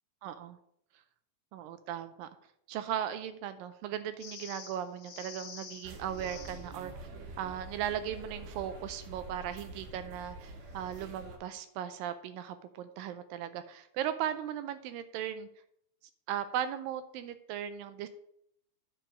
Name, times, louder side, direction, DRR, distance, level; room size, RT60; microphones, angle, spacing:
voice 1, 0.2-0.6 1.5-2.3 2.7-6.9 7.4-15.5 16.3-18.1, right 10 dB, 80° right, 11 dB, 2.1 m, -37 dB
sound 1, 4.2-6.7 10.8-11.0, left 6 dB, 55° left, 1.8 m, -48 dB
sound 2, 5.8-11.4, right 2 dB, 65° right, 2.5 m, -46 dB
10.0 x 4.6 x 6.2 m, 0.74 s
omnidirectional pair, 4.3 m